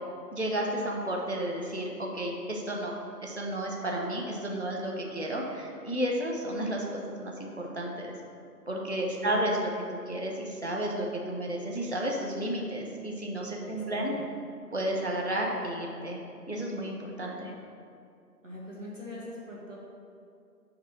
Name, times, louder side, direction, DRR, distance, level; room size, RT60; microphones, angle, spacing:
voice 1, 0.3-3.0 3.2-8.2 8.7-14.1 14.7-16.2 16.5-17.5, right 1 dB, 45° left, 0 dB, 0.6 m, -32 dB
voice 2, 13.6-14.2 18.4-19.8, left 1 dB, 50° right, -5 dB, 1.6 m, -42 dB
5.2 x 4.0 x 6.0 m, 2.4 s
figure-of-eight pair, 170°, 49 cm